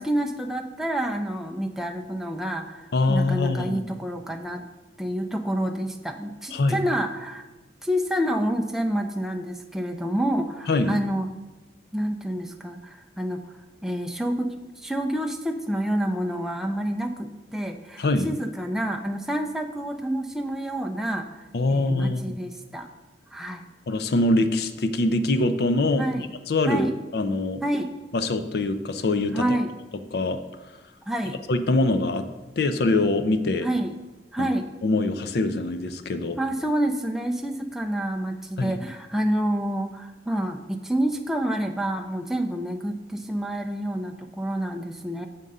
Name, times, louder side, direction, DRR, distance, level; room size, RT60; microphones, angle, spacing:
voice 1, 0.0-4.6 5.0-7.4 7.8-11.3 11.9-13.4 13.8-21.3 21.7-22.9 23.3-23.6 26.0-26.2 26.7-27.0 27.6-27.9 29.3-29.8 31.1-31.4 33.6-33.9 34.3-34.7 36.4-45.3, right 1 dB, ahead, 3 dB, 0.4 m, -28 dB
voice 2, 2.9-3.8 6.5-6.8 10.7-11.0 18.0-18.3 21.5-22.2 23.9-26.9 27.1-27.6 28.1-29.4 30.1-30.4 31.5-32.3 32.6-33.7 34.4-34.5 34.8-36.4 38.6-38.8, left 2 dB, 60° left, 10 dB, 0.4 m, -23 dB
6.7 x 3.7 x 5.3 m, 1.1 s
head